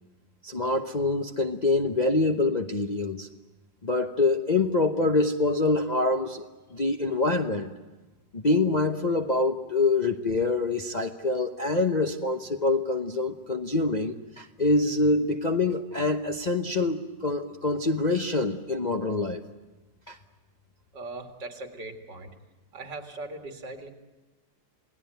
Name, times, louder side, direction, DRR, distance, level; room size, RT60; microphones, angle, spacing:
voice 1, 0.4-3.3 3.8-7.7 8.3-19.4 20.1-20.2, left 2 dB, 35° left, 4 dB, 0.7 m, -25 dB
voice 2, 20.9-22.3 22.7-23.9, right 2 dB, 70° right, 4 dB, 2.8 m, -39 dB
28.5 x 18.5 x 9.1 m, 1.2 s
omnidirectional pair, 1.9 m